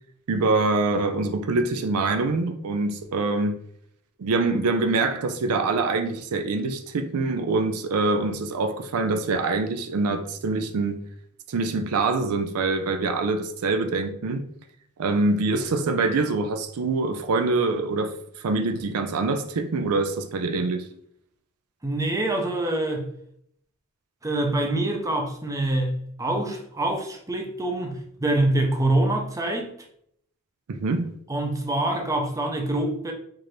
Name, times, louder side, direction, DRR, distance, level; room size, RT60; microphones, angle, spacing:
voice 1, 0.3-3.6 4.2-11.1 11.5-14.4 15.0-18.1 18.4-20.9 30.7-31.1, right 3 dB, 75° right, 0.4 m, -25 dB
voice 2, 21.8-23.0 24.2-29.7 31.3-33.1, right 1 dB, 15° right, 0.6 m, -25 dB
4.6 x 2.5 x 3.0 m
head